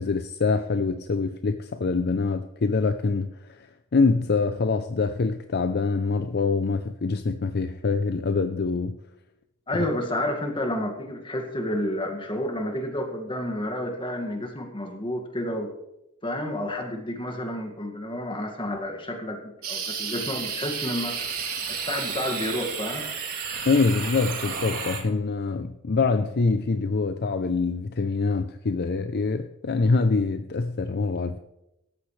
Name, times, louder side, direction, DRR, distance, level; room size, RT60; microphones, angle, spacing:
voice 1, 0.0-3.3 3.9-9.0 23.7-31.4, left 4 dB, 50° left, 9 dB, 0.5 m, -25 dB
voice 2, 9.7-15.7 16.2-21.2 21.7-23.0, left 1 dB, 25° left, 3 dB, 2.0 m, -30 dB
sound 1, 19.6-25.0, right 6 dB, 80° right, 3.1 m, -32 dB
17.5 x 14.0 x 3.3 m, 0.90 s
head